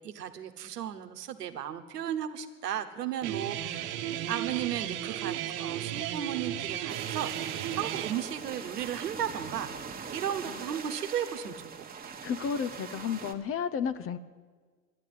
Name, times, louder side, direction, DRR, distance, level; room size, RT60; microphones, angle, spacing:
voice 1, 0.0-3.9 4.3-7.4 7.7-9.7 10.1-12.1, right 9 dB, 90° right, 7 dB, 1.1 m, -35 dB
Guitar, 3.2-8.1, right 11 dB, 60° right, 1.2 m, -34 dB
sound 1, 6.9-13.3, right 6 dB, 20° right, 1.3 m, -42 dB
voice 2, 12.2-14.2, left 7 dB, 30° left, 14 dB, 0.6 m, -32 dB
11.0 x 10.5 x 9.1 m, 1.5 s
hypercardioid pair, 90°, 46 cm